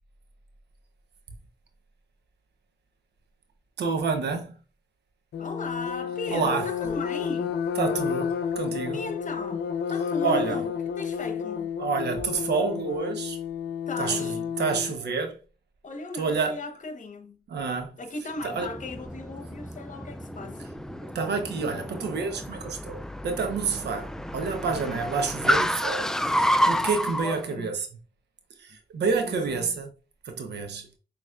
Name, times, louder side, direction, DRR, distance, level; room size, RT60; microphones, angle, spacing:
voice 1, 3.8-4.6 6.3-6.7 7.8-9.0 10.2-10.6 11.8-13.4 14.0-14.3 14.6-15.4 16.2-16.6 17.5-18.0 18.4-18.7 21.0-27.8 28.6-29.9 30.2-30.9, right 4 dB, 80° right, 0.9 m, -28 dB
sound 1, 5.3-14.9, left 7 dB, 80° left, 0.5 m, -31 dB
voice 2, 5.4-7.6 8.9-11.7 13.9-14.4 15.8-17.4 18.0-20.7 24.8-25.1 27.2-27.8 29.2-29.8, left 3 dB, 50° left, 1.0 m, -37 dB
Car, 18.4-27.3, equal, 5° left, 0.4 m, -29 dB
6.4 x 3.0 x 2.4 m
cardioid pair, 60°, 17 cm